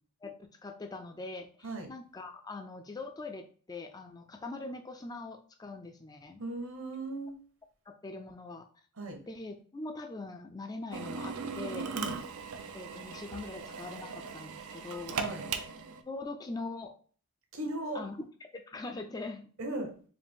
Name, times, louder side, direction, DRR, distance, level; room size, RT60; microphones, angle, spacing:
voice 1, 0.2-6.4 7.9-8.7 9.3-12.0 12.7-15.2 16.1-17.0 17.9-19.5, left 3 dB, 20° left, 6 dB, 0.3 m, -42 dB
voice 2, 6.4-7.3 9.0-9.2 11.9-12.2 15.2-15.5 17.5-18.0 19.6-19.9, right 2 dB, 65° right, 4 dB, 1.0 m, -37 dB
Drill, 10.9-16.0, right 5 dB, 85° right, 0.5 m, -38 dB
4.7 x 2.5 x 3.6 m, 0.42 s
head